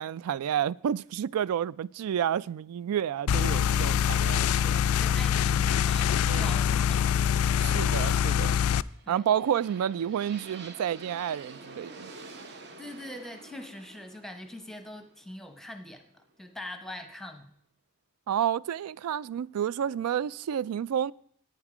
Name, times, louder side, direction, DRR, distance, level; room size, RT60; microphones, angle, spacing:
voice 1, 0.0-4.8 6.2-6.6 7.6-8.6 9.1-12.1 18.3-21.1, right 9 dB, 85° right, 0.3 m, -30 dB
sound 1, 3.3-8.8, left 8 dB, 75° left, 0.3 m, -24 dB
voice 2, 5.0-7.1 9.0-9.3 12.8-16.1 16.4-17.5, left 1 dB, ahead, 0.8 m, -42 dB
sound 2, 8.9-16.5, right 3 dB, 50° right, 1.1 m, -48 dB
10.5 x 9.2 x 4.9 m
head